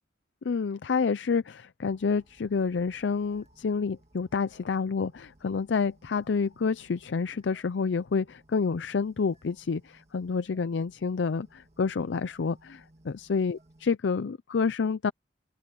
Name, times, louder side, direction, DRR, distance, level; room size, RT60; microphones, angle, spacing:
voice 1, 0.4-15.1, left 5 dB, 75° left, 0.5 m, -29 dB
sound 1, 1.9-14.0, right 1 dB, 35° right, 2.1 m, -61 dB
open air
head